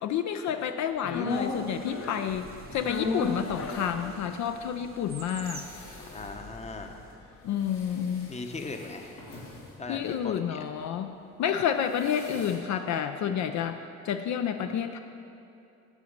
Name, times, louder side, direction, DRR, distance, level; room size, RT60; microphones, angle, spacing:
voice 1, 0.0-5.6 7.4-8.3 9.9-11.1 11.4-13.8 14.0-15.0, left 8 dB, 70° left, 7 dB, 0.5 m, -30 dB
voice 2, 1.0-1.4 6.1-7.0 8.3-9.1 9.8-10.6, left 3 dB, 20° left, 5 dB, 0.8 m, -39 dB
sound 1, 1.1-9.4 9.7-9.8, left 3 dB, 50° left, 0.9 m, -37 dB
sound 2, 1.3-7.2, right 4 dB, 30° right, 0.7 m, -49 dB
sound 3, 5.4-12.5, left 2 dB, 85° left, 2.0 m, -50 dB
8.4 x 6.9 x 5.1 m, 2.6 s
cardioid pair, 90°, 30 cm